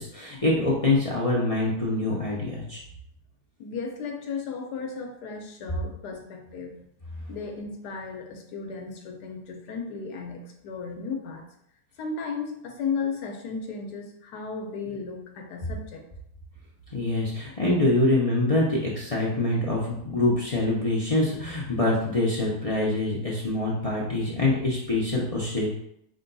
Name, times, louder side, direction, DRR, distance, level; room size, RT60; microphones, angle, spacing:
voice 1, 0.0-2.8 16.9-25.7, left 2 dB, 50° left, -5 dB, 0.4 m, -25 dB
voice 2, 3.6-6.8 7.3-11.5 12.0-16.1, left 5 dB, 80° left, 2 dB, 1.3 m, -35 dB
4.8 x 2.3 x 3.9 m, 0.75 s
omnidirectional pair, 1.7 m